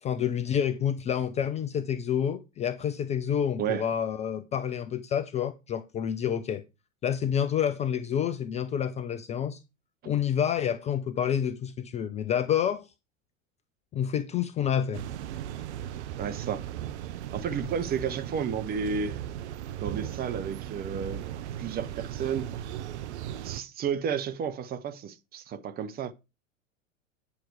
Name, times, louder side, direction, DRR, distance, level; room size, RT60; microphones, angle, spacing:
voice 1, 0.0-6.6 7.0-9.6 10.1-12.9 13.9-15.0, left 9 dB, 15° left, 0.4 m, -28 dB
sound 1, 14.9-23.6, right 11 dB, 55° right, 0.7 m, -37 dB
voice 2, 16.2-16.6 17.3-19.2 19.8-21.2 21.6-22.5 23.4-26.1, right 7 dB, 25° right, 0.7 m, -32 dB
9.7 x 5.9 x 4.7 m
figure-of-eight pair, 85°, 40 cm